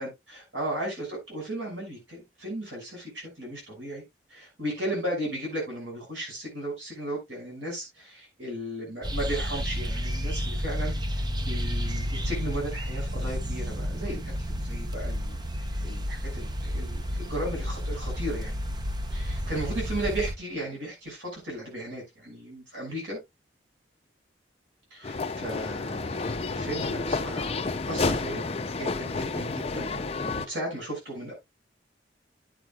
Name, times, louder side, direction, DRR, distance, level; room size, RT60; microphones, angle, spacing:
voice 1, 0.0-4.0 4.3-14.2 14.5-15.4 15.8-18.6 19.1-23.2 24.9-27.5 27.9-28.4 28.8-31.3, right 1 dB, 85° right, 6.2 m, -35 dB
sound 1, 9.0-20.4, equal, 25° right, 0.7 m, -31 dB
sound 2, 25.0-30.5, left 3 dB, 35° left, 0.6 m, -30 dB
11.0 x 8.6 x 2.4 m
head